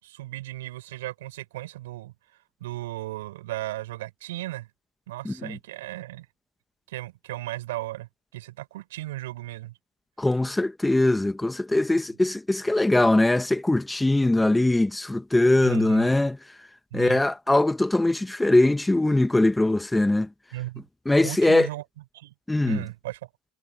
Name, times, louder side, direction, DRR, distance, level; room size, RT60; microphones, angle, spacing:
voice 1, 0.0-4.7 5.1-6.3 6.9-9.7 10.3-10.4 15.6-16.1 16.9-17.2 20.5-20.8 21.2-21.8 22.1-22.3 22.6-23.3, right 16 dB, 85° right, 5.4 m, -36 dB
voice 2, 5.3-5.6 10.2-16.4 16.9-20.3 21.1-21.7 22.5-22.8, left 2 dB, 5° left, 0.8 m, -21 dB
supercardioid pair, 130°, 0 cm